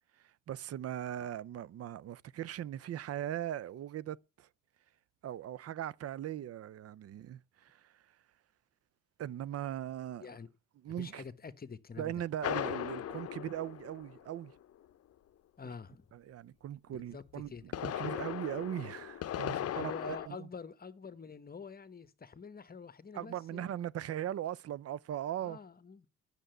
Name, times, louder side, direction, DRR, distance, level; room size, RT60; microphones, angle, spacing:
voice 1, 0.2-4.5 5.2-8.0 9.2-10.3 10.8-11.2 12.0-14.6 15.6-15.7 16.1-20.5 23.1-25.6, right 11 dB, 55° right, 0.5 m, -39 dB
voice 2, 11.0-12.2 15.6-16.0 16.9-17.6 19.7-23.7 25.4-26.1, left 5 dB, 30° left, 1.1 m, -47 dB
sound 1, 12.4-14.5 17.4-20.3, left 11 dB, 55° left, 0.7 m, -38 dB
10.0 x 6.8 x 7.9 m
cardioid pair, 90°, 30 cm